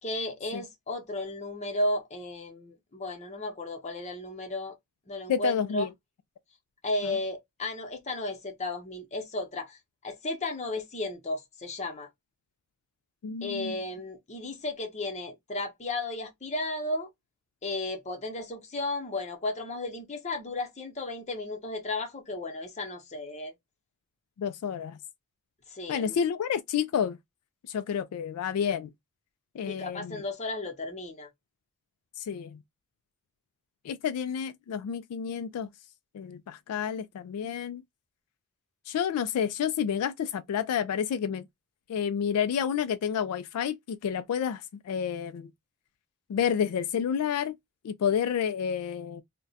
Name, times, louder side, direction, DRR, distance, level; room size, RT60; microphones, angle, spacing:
voice 1, 0.0-4.8 5.1-5.9 6.8-12.1 13.4-17.1 17.6-23.5 25.7-26.2 29.6-31.3, left 2 dB, 30° left, 0.8 m, -34 dB
voice 2, 5.3-5.9 7.0-7.2 13.2-13.7 24.4-25.0 25.9-27.2 27.7-28.9 29.5-30.2 32.2-32.6 33.8-35.7 36.1-37.8 38.9-41.4 41.9-45.5 46.3-47.6 47.8-49.2, left 8 dB, 75° left, 0.3 m, -30 dB
2.4 x 2.2 x 3.9 m
head